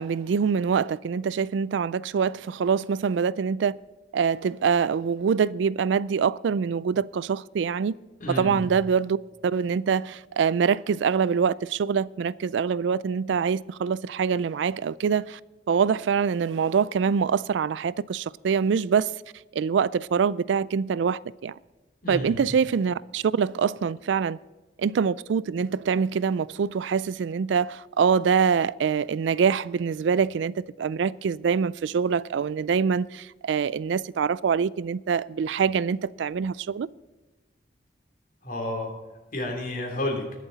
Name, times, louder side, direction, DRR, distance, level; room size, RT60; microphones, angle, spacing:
voice 1, 0.0-3.8 4.1-7.9 8.3-15.4 15.7-19.1 19.5-21.5 22.1-24.4 24.8-36.9, right 6 dB, 80° right, 0.3 m, -25 dB
voice 2, 8.2-8.6 22.0-22.5 38.4-38.9 39.3-40.2, left 1 dB, 50° left, 3.2 m, -30 dB
21.0 x 7.5 x 4.0 m
head